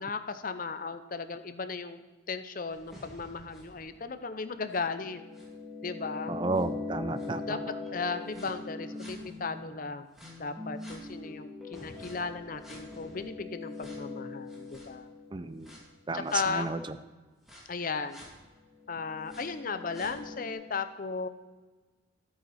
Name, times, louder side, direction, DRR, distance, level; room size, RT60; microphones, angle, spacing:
voice 1, 0.0-5.2 5.8-6.4 7.4-10.1 10.4-15.1 16.1-16.7 17.7-18.3 18.9-21.3, left 4 dB, 45° left, 10 dB, 0.6 m, -36 dB
sound 1, 2.7-9.6 10.2-15.8 16.3-16.4 17.5-17.6 18.1-18.3 18.8-20.5, left 3 dB, ahead, 2.6 m, -42 dB
voice 2, 6.3-7.6 15.3-15.7 16.1-16.8, right 3 dB, 25° right, 12 dB, 0.4 m, -32 dB
13.0 x 8.9 x 4.2 m, 1.3 s
head